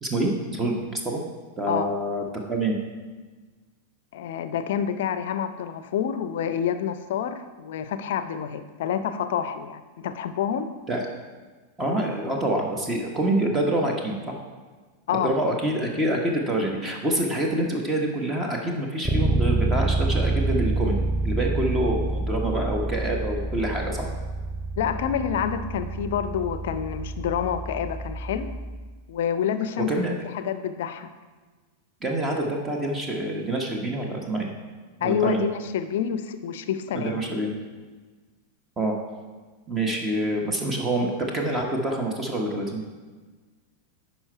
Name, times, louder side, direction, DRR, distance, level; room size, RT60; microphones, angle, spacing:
voice 1, 0.0-1.2 1.6-2.8 10.9-11.0 11.8-14.3 15.1-24.1 29.9-30.1 32.0-34.5 35.0-35.4 36.9-37.5 38.8-38.9 39.7-42.8, right 1 dB, 15° right, 1 dB, 1.2 m, -26 dB
voice 2, 4.1-10.7 15.1-15.3 24.8-28.5 29.1-29.9 30.3-31.1 35.0-37.2, left 8 dB, 55° left, 10 dB, 0.5 m, -28 dB
Bass guitar, 19.0-28.9, right 2 dB, ahead, 0.6 m, -27 dB
10.5 x 4.4 x 4.5 m, 1.4 s
figure-of-eight pair, 90°, 0 cm